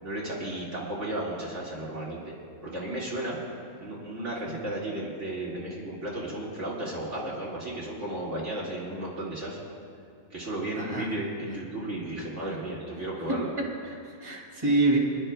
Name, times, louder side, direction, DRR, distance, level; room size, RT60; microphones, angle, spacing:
voice 1, 0.0-2.3 2.6-3.4 3.8-9.6 10.3-13.5, right 1 dB, 50° right, -5 dB, 2.3 m, -34 dB
voice 2, 10.8-11.1 13.3-15.0, right 2 dB, 15° right, -3 dB, 2.3 m, -27 dB
27.5 x 11.5 x 2.2 m, 2.3 s
omnidirectional pair, 1.6 m